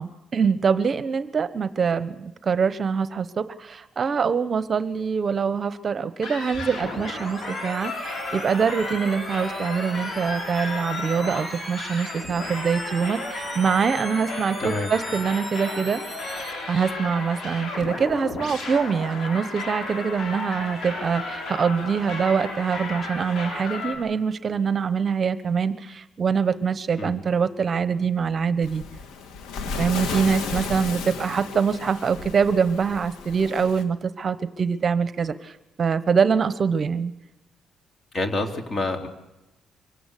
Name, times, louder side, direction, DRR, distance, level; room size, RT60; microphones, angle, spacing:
voice 1, 0.0-16.0 16.7-28.8 29.8-37.1, right 6 dB, 45° right, 13 dB, 0.9 m, -24 dB
sound 1, 6.2-24.0, left 3 dB, 70° left, 7.0 m, -33 dB
sound 2, 6.5-16.5, right 3 dB, 20° right, 5.0 m, -41 dB
voice 2, 14.6-14.9 27.0-27.2 38.1-39.1, left 2 dB, 40° left, 4 dB, 3.1 m, -27 dB
Waves surf, 28.6-33.8, left 5 dB, 90° left, 1.9 m, -33 dB
24.5 x 17.0 x 8.3 m, 0.99 s
cardioid pair, 90°, 0 cm